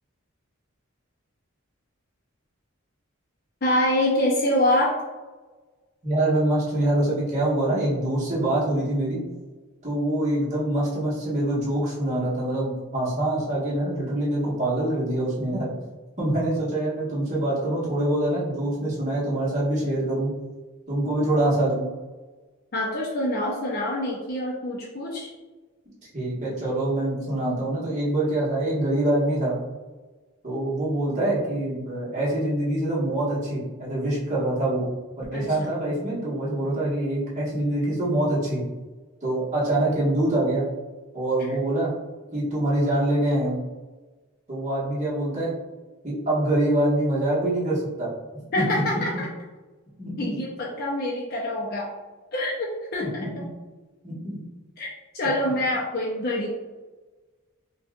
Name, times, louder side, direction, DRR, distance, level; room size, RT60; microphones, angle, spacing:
voice 1, 3.6-4.9 22.7-25.3 35.3-35.7 48.5-49.3 50.2-51.9 52.3-53.3 54.8-54.9 55.1-56.5, left 1 dB, 45° left, -5 dB, 0.6 m, -25 dB
voice 2, 6.0-9.2 9.8-15.7 16.2-20.3 20.9-21.8 26.1-29.6 30.4-34.9 35.2-38.6 39.2-40.6 41.1-41.9 42.3-43.6 44.5-45.5 46.0-48.1 48.6-48.7 50.0-50.3 53.2-53.4 54.0-54.4, right 1 dB, 35° right, -8 dB, 1.4 m, -25 dB
5.2 x 2.4 x 2.4 m, 1.2 s
head